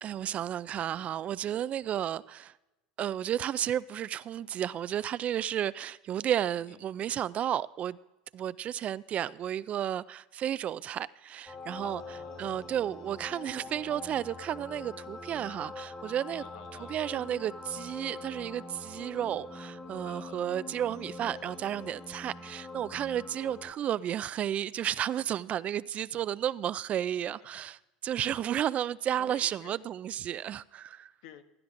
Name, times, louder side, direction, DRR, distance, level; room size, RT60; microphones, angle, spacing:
voice 1, 0.0-2.5 3.0-8.0 8.3-12.0 12.4-16.4 16.9-31.1, right 10 dB, 40° right, 0.3 m, -32 dB
sound 1, 11.5-23.7, left 3 dB, 15° left, 1.7 m, -44 dB
voice 2, 11.8-12.8 16.3-17.0 20.0-20.5 27.1-27.5 29.2-29.8 31.2-31.4, left 10 dB, 70° left, 1.2 m, -51 dB
16.5 x 12.0 x 2.5 m
supercardioid pair, 105°, 4 cm